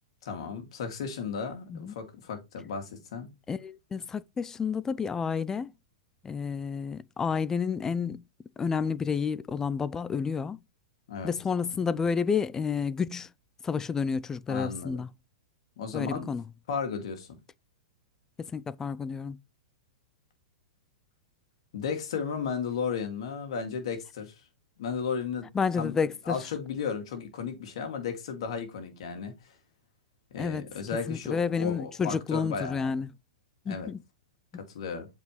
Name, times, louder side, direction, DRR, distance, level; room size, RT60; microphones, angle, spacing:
voice 1, 0.2-3.3 11.1-11.3 14.5-15.0 15.8-16.3 16.7-17.4 21.7-24.3 24.8-25.5 25.8-26.0 26.3-29.5 30.3-33.0 33.7-33.9 34.5-35.1, left 6 dB, 65° left, 2.4 m, -34 dB
voice 2, 3.5-5.7 6.2-8.2 8.6-10.6 11.2-13.3 13.6-15.1 15.9-16.4 18.4-19.4 25.5-26.4 30.4-30.6 31.1-33.1 33.7-34.0, left 6 dB, 15° left, 0.4 m, -30 dB
7.9 x 4.8 x 3.2 m
hypercardioid pair, 115°, 3 cm